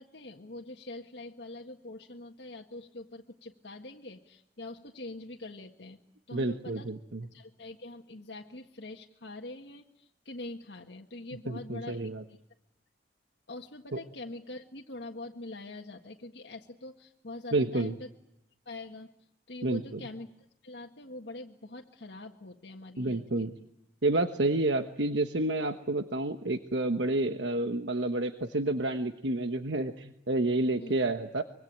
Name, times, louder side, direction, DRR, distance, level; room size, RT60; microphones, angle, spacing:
voice 1, 0.0-6.0 6.3-6.9 7.3-12.4 13.5-18.1 18.6-19.1 19.5-20.3 20.6-23.6 30.8-30.9, left 2 dB, 75° left, 1 dB, 1.7 m, -44 dB
voice 2, 6.3-7.3 11.5-12.2 13.9-14.0 17.5-18.0 19.6-19.8 23.0-23.5 24.0-31.4, right 2 dB, 80° right, 7 dB, 1.3 m, -29 dB
25.0 x 23.5 x 8.9 m, 0.81 s
head